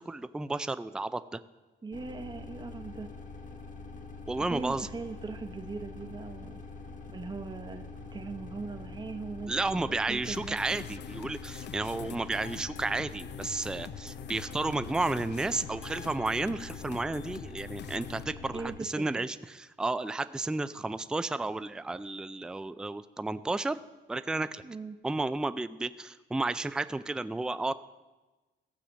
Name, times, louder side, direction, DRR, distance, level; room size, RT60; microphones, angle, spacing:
voice 1, 0.0-1.4 4.3-4.9 9.5-23.8 24.1-24.6 25.0-27.7, right 2 dB, 5° right, 13 dB, 0.3 m, -32 dB
voice 2, 1.8-3.1 4.4-6.6 7.1-7.8 8.1-10.6 18.5-19.3 24.6-25.0, right 3 dB, 20° right, 5 dB, 0.8 m, -40 dB
sound 1, 1.9-18.8, left 3 dB, 40° left, 1.2 m, -45 dB
sound 2, 6.0-11.3, right 6 dB, 70° right, 1.0 m, -59 dB
sound 3, 10.2-18.2, left 10 dB, 60° left, 0.5 m, -45 dB
15.0 x 4.9 x 7.3 m, 1.2 s
cardioid pair, 90°, 20 cm